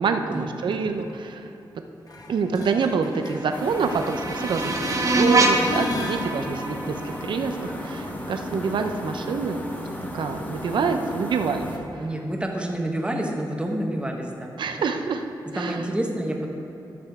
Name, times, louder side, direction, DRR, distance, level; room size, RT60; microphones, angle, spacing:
voice 1, 0.0-1.5 2.3-9.6 10.1-11.7 14.6-15.2 15.5-15.8, right 5 dB, 80° right, 6 dB, 0.6 m, -26 dB
sound 1, 2.1-4.1 4.4-6.3 12.0-12.1, left 3 dB, 50° left, 1.0 m, -35 dB
sound 2, 3.1-8.1, right 2 dB, 45° right, 0.8 m, -26 dB
sound 3, 3.5-11.8, left 1 dB, 20° left, 1.1 m, -35 dB
voice 2, 12.0-14.5 15.5-16.5, right 1 dB, 15° right, 1 dB, 1.1 m, -28 dB
13.0 x 6.8 x 3.5 m, 3.0 s
wide cardioid pair, 90°, 8 cm